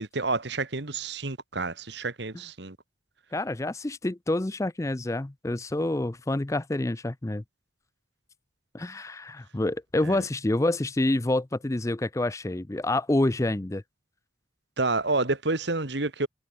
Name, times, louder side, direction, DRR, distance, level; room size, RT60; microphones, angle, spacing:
voice 1, 0.0-2.8 10.1-10.2 14.8-16.3, right 3 dB, 60° right, 1.6 m, -29 dB
voice 2, 3.3-7.4 8.7-13.8, left 1 dB, 15° left, 0.4 m, -27 dB
head